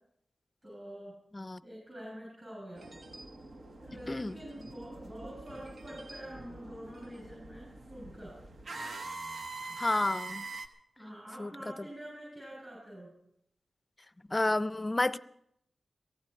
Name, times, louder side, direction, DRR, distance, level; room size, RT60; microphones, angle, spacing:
voice 1, 0.6-1.2 1.6-2.9 3.8-8.4 11.0-13.1, equal, 25° right, 7.1 m, -46 dB
sound 1, 2.8-10.7, right 3 dB, 60° right, 1.0 m, -44 dB
voice 2, 9.8-10.4 11.4-11.5 14.3-15.2, left 2 dB, 25° left, 0.5 m, -30 dB
17.5 x 15.0 x 4.4 m
wide cardioid pair, 80°, 0 cm